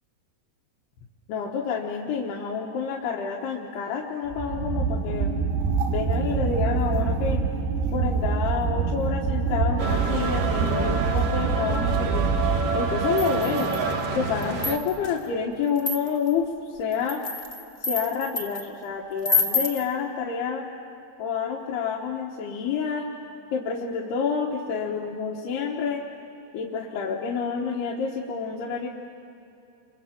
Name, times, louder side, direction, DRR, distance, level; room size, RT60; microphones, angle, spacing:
voice 1, 1.3-5.3 5.9-7.4 7.9-12.3 12.7-13.7 14.1-17.2 17.8-20.7 21.2-23.1 23.5-26.0 26.5-28.9, left 6 dB, 90° left, -2 dB, 3.4 m, -28 dB
sound 1, 4.3-13.4, right 5 dB, 80° right, 3.5 m, -26 dB
sound 2, 9.8-14.8, right 4 dB, 55° right, 2.5 m, -28 dB
sound 3, 13.2-13.9 14.4-15.1 15.8-16.3 16.9-18.6 19.2-19.8, left 4 dB, 50° left, 0.4 m, -28 dB
29.0 x 25.0 x 7.5 m, 2.8 s
omnidirectional pair, 4.6 m